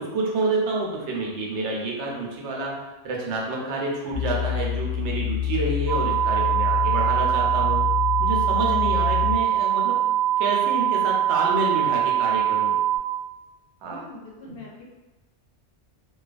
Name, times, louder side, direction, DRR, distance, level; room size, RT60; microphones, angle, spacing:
voice 1, 0.0-7.8 8.2-10.0 10.4-12.8 13.8-14.0 14.4-14.6, right 2 dB, 80° right, -2 dB, 0.9 m, -28 dB
sound 1, 4.1-9.4, left 10 dB, 20° left, 0.8 m, -27 dB
sound 2, 5.9-13.0, right 11 dB, 40° right, 0.7 m, -22 dB
voice 2, 13.8-14.8, left 2 dB, 65° left, -3 dB, 0.7 m, -43 dB
2.3 x 2.3 x 2.4 m, 1.1 s
omnidirectional pair, 1.2 m